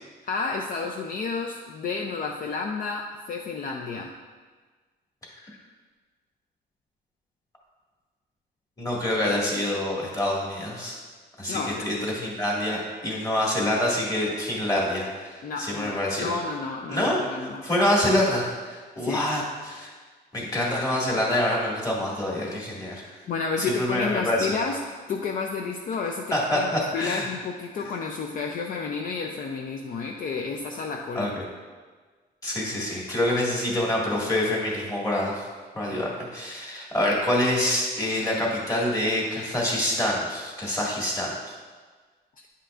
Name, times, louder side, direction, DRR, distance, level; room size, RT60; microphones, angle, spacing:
voice 1, 0.3-4.1 11.5-12.0 15.4-17.7 19.0-19.2 23.3-31.3, left 4 dB, 55° left, 2 dB, 0.5 m, -31 dB
voice 2, 8.8-11.0 11.4-16.3 16.9-17.2 17.6-19.9 20.3-23.1 23.7-24.5 26.3-27.3 27.8-27.9 31.1-31.4 32.4-35.5 35.7-41.3, left 1 dB, 20° left, -4 dB, 1.9 m, -26 dB
9.6 x 5.7 x 2.5 m, 1.4 s
cardioid pair, 120°, 17 cm